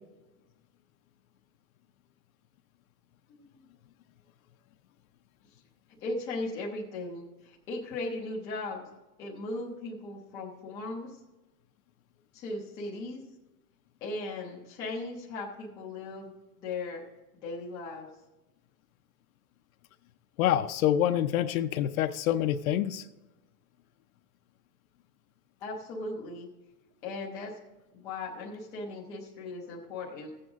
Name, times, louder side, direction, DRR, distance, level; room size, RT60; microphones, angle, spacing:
voice 1, 3.3-3.6 6.0-8.9 9.2-11.2 12.3-13.2 14.0-17.0 17.4-18.1 25.6-26.5 27.0-27.6 27.9-30.3, left 2 dB, 10° left, -4 dB, 0.4 m, -37 dB
voice 2, 20.4-23.1, left 11 dB, 55° left, 8 dB, 0.6 m, -26 dB
14.5 x 7.9 x 3.5 m, 1.1 s
supercardioid pair, 165°, 49 cm